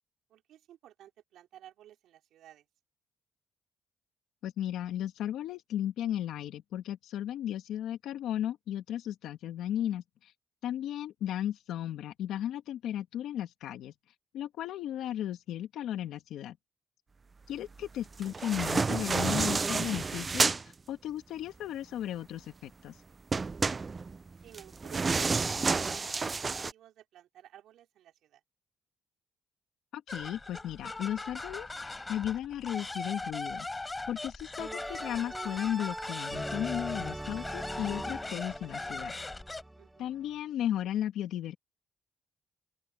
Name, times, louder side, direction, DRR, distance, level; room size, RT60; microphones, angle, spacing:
voice 1, 0.3-2.7 24.4-25.9 26.4-28.4 39.8-40.1, right 12 dB, 80° right, 3.7 m, -55 dB
voice 2, 4.4-10.3 10.6-13.9 14.3-16.6 17.5-23.0 29.9-33.7 34.1-39.1 40.0-41.6, left 11 dB, 85° left, 2.2 m, -35 dB
sound 1, 18.2-20.6 23.3-26.7, right 4 dB, 30° right, 0.4 m, -30 dB
sound 2, 30.1-39.6, left 2 dB, 20° left, 4.2 m, -39 dB
sound 3, 31.5-32.0 34.6-40.3, right 1 dB, 10° right, 0.8 m, -42 dB
open air
cardioid pair, 90°, 0 cm